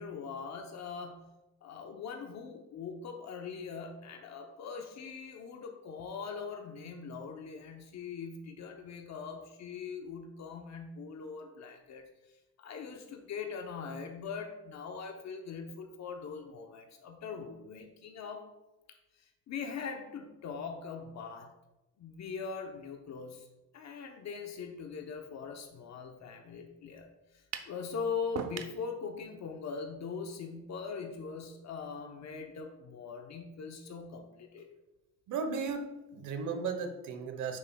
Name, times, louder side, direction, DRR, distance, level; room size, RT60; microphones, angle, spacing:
voice 1, 0.0-1.3 1.6-12.1 12.6-18.5 19.1-21.5 22.0-23.5 23.7-34.7, left 5 dB, 65° left, 4 dB, 0.8 m, -41 dB
sound 1, 27.5-27.8 28.4-28.8, right 7 dB, 60° right, 0.7 m, -38 dB
voice 2, 35.3-35.9 36.1-37.6, right 5 dB, 85° right, 7 dB, 1.0 m, -35 dB
9.2 x 5.8 x 2.3 m, 1.0 s
cardioid pair, 90°, 30 cm